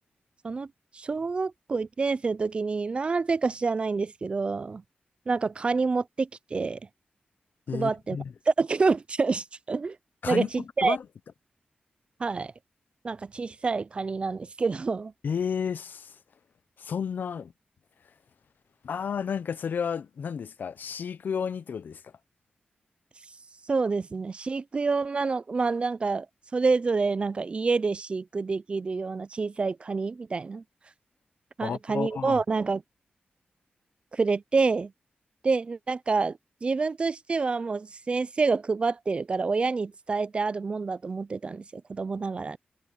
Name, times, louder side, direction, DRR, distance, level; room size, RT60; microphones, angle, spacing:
voice 1, 0.9-4.8 5.3-6.8 7.7-8.2 8.5-10.0 10.3-11.0 12.2-12.5 13.0-15.1 23.7-26.3 26.5-30.6 31.6-32.8 34.1-34.9 35.4-42.6, right 4 dB, 35° right, 0.3 m, -27 dB
voice 2, 7.7-8.3 10.2-10.5 10.8-11.0 15.2-16.1 16.8-17.5 18.8-22.0 31.6-32.4, left 7 dB, 65° left, 0.6 m, -31 dB
wide cardioid pair, 170°, 3 cm